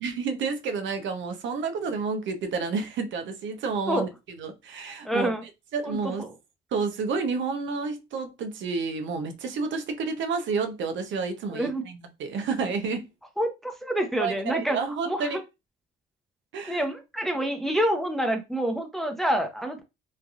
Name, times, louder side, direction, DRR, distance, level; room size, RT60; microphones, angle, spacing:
voice 1, 0.0-4.1 4.4-5.3 5.7-6.2 6.7-13.1 14.2-15.4 16.5-16.8, right 4 dB, 70° right, 0.7 m, -30 dB
voice 2, 5.0-5.4 5.8-6.3 11.5-11.9 13.4-14.8 15.1-15.4 16.7-19.8, right 1 dB, ahead, 0.7 m, -27 dB
3.2 x 2.5 x 2.4 m
cardioid pair, 90°, 20 cm